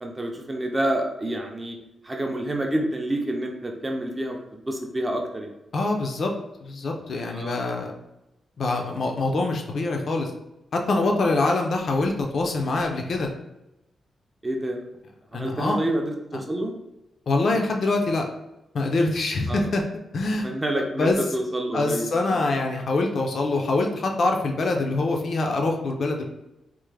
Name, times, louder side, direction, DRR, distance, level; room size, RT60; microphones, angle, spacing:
voice 1, 0.0-1.8 2.0-5.5 7.3-7.6 14.4-14.8 15.3-16.7 19.5-19.7 20.4-22.5, right 1 dB, 15° right, 2 dB, 0.4 m, -28 dB
voice 2, 5.7-6.3 6.6-7.9 8.6-10.3 10.7-13.3 15.3-15.8 17.3-18.2 18.7-19.8 20.1-21.2 21.7-26.2, left 2 dB, 50° left, 2 dB, 0.4 m, -24 dB
3.3 x 2.0 x 3.2 m, 0.92 s
wide cardioid pair, 160°, 0 cm